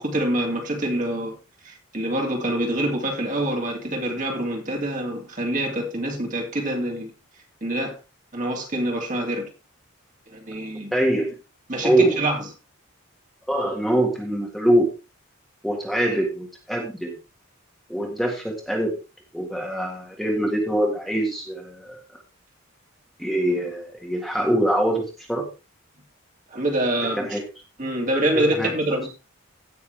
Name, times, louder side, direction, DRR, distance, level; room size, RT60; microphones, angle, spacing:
voice 1, 0.0-1.4 1.6-7.1 7.6-7.9 8.3-9.4 10.3-10.9 11.7-12.4 26.5-27.4 27.8-29.1, right 1 dB, 35° right, 2.8 m, -26 dB
voice 2, 10.9-11.3 11.8-12.2 13.5-14.9 15.6-17.1 17.9-18.9 19.3-22.0 23.2-25.5 27.2-27.4 28.3-28.7, right 1 dB, ahead, 1.8 m, -23 dB
16.5 x 6.1 x 3.4 m
head